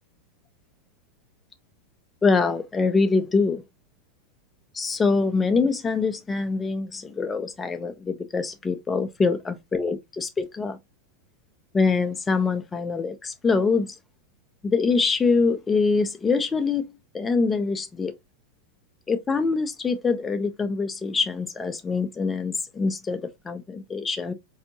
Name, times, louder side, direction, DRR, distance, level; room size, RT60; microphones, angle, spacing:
voice 1, 2.2-3.6 4.7-10.8 11.7-14.0 14.6-18.1 19.1-24.3, left 4 dB, 15° left, 0.4 m, -24 dB
4.2 x 2.7 x 2.6 m
figure-of-eight pair, 90°, 0 cm